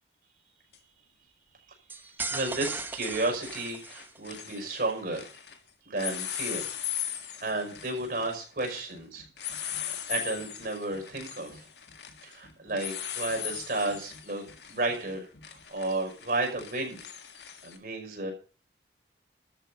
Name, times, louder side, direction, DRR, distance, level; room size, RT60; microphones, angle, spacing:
sound 1, 0.7-0.8 2.6-2.9 3.1-5.6 5.9-17.8, left 10 dB, 70° left, 1.8 m, -39 dB
sound 2, 1.9-4.4, right 3 dB, 10° right, 0.9 m, -37 dB
voice 1, 2.3-5.3 5.8-6.6 7.4-11.7 12.2-15.3 15.7-17.0 17.6-18.3, right 2 dB, 55° right, 3 dB, 5.9 m, -33 dB
13.0 x 5.8 x 9.2 m, 0.37 s
head